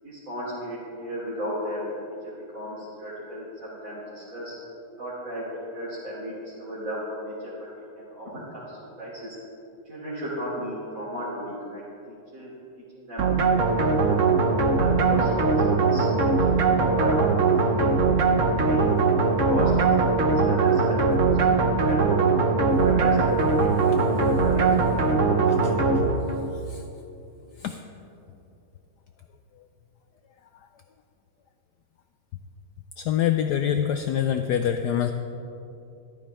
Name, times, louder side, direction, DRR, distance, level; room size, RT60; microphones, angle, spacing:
voice 1, 0.0-1.9 2.5-4.6 5.0-5.4 5.7-7.3 8.0-9.4 9.8-12.5 12.9-13.5 13.8-14.2 14.7-16.6 16.9-17.1 17.6-18.0 18.5-18.9 19.2-19.7 20.2-22.2 22.8-23.7 24.0-24.9 25.2-25.4, equal, 40° right, -10 dB, 3.2 m, -35 dB
sound 1, 13.2-26.5, right 4 dB, 55° right, 0.8 m, -21 dB
voice 2, 33.0-35.1, left 9 dB, 90° left, 7 dB, 0.9 m, -25 dB
14.0 x 12.5 x 3.5 m, 2.8 s
omnidirectional pair, 2.3 m